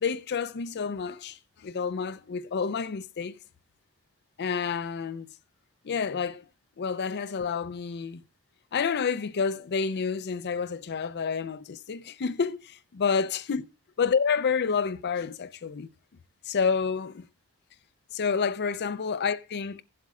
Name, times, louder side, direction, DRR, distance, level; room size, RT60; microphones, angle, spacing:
voice 1, 0.0-3.4 4.4-5.3 5.8-6.4 6.8-8.2 8.7-13.6 14.0-15.9 16.5-17.3 18.1-19.8, left 5 dB, 50° left, 0.5 m, -29 dB
16.0 x 7.6 x 2.4 m
head